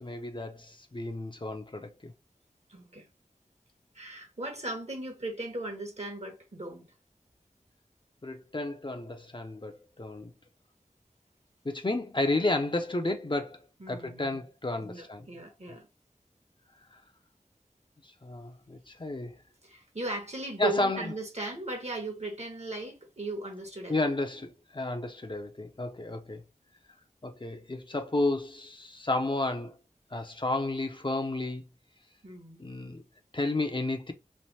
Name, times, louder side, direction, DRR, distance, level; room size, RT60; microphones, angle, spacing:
voice 1, 0.0-2.1 8.2-10.3 11.6-13.6 13.9-15.3 16.9-17.0 18.2-19.4 20.6-21.1 23.9-26.4 27.2-29.8 30.1-31.6 32.6-33.0 33.3-34.1, left 2 dB, 35° left, 0.6 m, -32 dB
voice 2, 2.7-3.1 3.9-6.9 13.8-14.4 14.8-15.9 19.6-24.1 32.2-32.6, right 2 dB, 50° right, 1.1 m, -37 dB
3.2 x 2.6 x 2.8 m
wide cardioid pair, 55°, 14 cm